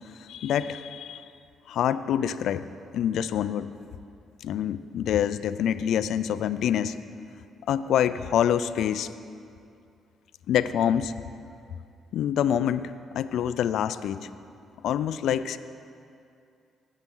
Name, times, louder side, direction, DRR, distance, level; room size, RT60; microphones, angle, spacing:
voice 1, 0.2-1.2 1.7-2.6 2.9-3.7 4.4-7.0 7.7-9.1 10.5-11.1 12.1-14.3 14.8-15.6, left 9 dB, 75° left, 14 dB, 0.4 m, -26 dB
17.5 x 7.2 x 3.8 m, 2.5 s
cardioid pair, 90°, 0 cm